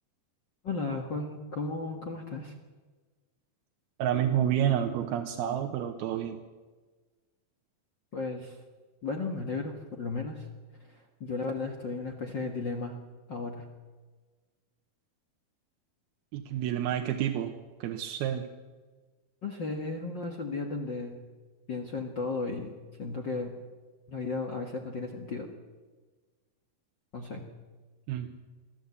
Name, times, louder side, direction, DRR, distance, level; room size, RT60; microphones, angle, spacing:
voice 1, 0.6-2.5 8.1-8.6 9.0-10.5 10.8-13.0 13.3-13.7 19.4-21.2 21.7-22.7 23.0-23.5 24.1-25.5 27.1-27.4, left 3 dB, 50° left, 3 dB, 1.3 m, -35 dB
voice 2, 4.0-6.4 16.3-17.5 17.8-18.5 28.1-28.3, right 10 dB, 85° right, 4 dB, 2.9 m, -29 dB
23.5 x 14.0 x 8.2 m, 1.3 s
omnidirectional pair, 4.3 m